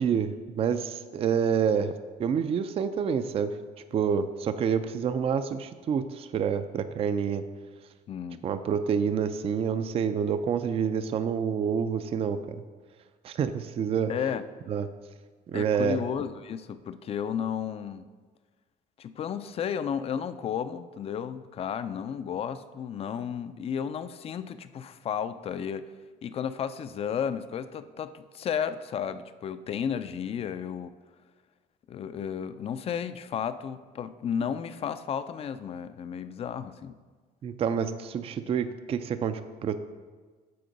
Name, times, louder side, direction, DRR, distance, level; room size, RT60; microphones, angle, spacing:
voice 1, 0.0-1.9 2.2-3.5 3.9-7.4 8.4-12.6 13.2-14.1 14.7-14.9 15.5-16.0 37.4-39.8, right 7 dB, 35° right, 11 dB, 0.3 m, -28 dB
voice 2, 8.1-8.4 14.1-14.4 15.5-18.1 19.0-25.9 26.2-30.9 31.9-37.0, left 8 dB, 35° left, 12 dB, 0.3 m, -33 dB
7.8 x 3.8 x 5.1 m, 1.4 s
cardioid pair, 110°, 17 cm